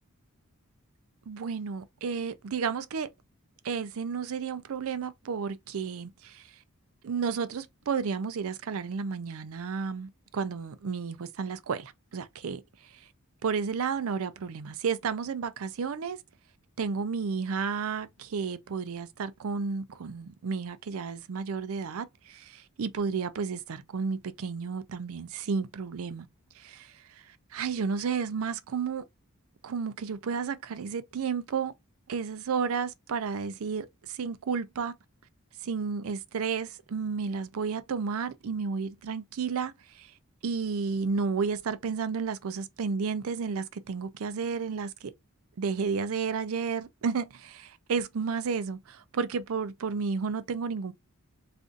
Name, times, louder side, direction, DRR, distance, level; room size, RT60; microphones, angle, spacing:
voice 1, 1.3-3.1 3.6-6.5 7.0-12.6 12.9-13.0 13.4-16.2 16.8-26.3 26.6-29.1 29.6-31.7 32.1-34.9 35.6-40.1 40.4-45.1 45.6-50.9, right 5 dB, 70° right, 0.4 m, -32 dB
2.5 x 2.5 x 3.7 m
head